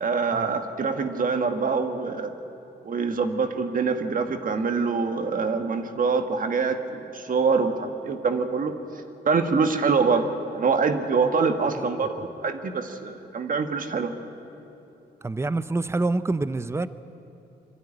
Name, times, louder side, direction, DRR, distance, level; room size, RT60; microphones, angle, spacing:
voice 1, 0.0-2.4 2.9-8.8 9.3-14.1, right 4 dB, 50° right, 6 dB, 1.6 m, -25 dB
voice 2, 15.2-16.9, right 2 dB, 15° right, 15 dB, 0.6 m, -26 dB
24.0 x 13.0 x 9.9 m, 2.8 s
cardioid pair, 110°, 18 cm